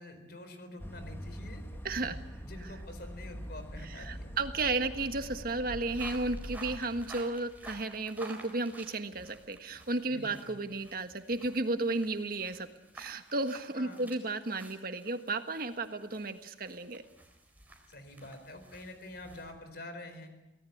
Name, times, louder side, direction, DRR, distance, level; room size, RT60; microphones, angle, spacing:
voice 1, 0.0-1.7 2.4-4.3 10.1-10.6 13.7-14.0 17.9-20.3, left 1 dB, 55° left, 8 dB, 4.4 m, -47 dB
sound 1, 0.8-6.8, equal, 15° left, 1.8 m, -43 dB
voice 2, 1.8-2.1 3.9-12.7 12.9-17.0, right 2 dB, 50° right, 8 dB, 1.6 m, -33 dB
sound 2, 5.9-19.5, right 2 dB, 10° right, 4.4 m, -53 dB
25.0 x 18.0 x 8.6 m, 1.0 s
head